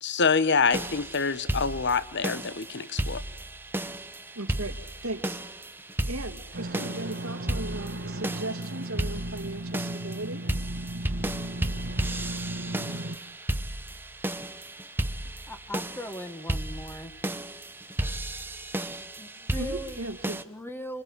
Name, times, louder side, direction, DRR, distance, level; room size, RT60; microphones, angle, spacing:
voice 1, 0.0-3.2, left 5 dB, 55° left, 1.4 m, -26 dB
sound 1, 0.7-20.4, right 1 dB, 10° right, 1.1 m, -34 dB
voice 2, 4.3-5.4 6.0-10.5 15.2-15.3 19.5-20.4, right 2 dB, 65° right, 2.5 m, -37 dB
sound 2, 6.5-13.2, right 1 dB, 50° right, 1.6 m, -36 dB
voice 3, 15.5-17.1 19.2-20.1 20.5-21.0, equal, 10° left, 1.8 m, -39 dB
27.5 x 26.0 x 8.0 m
head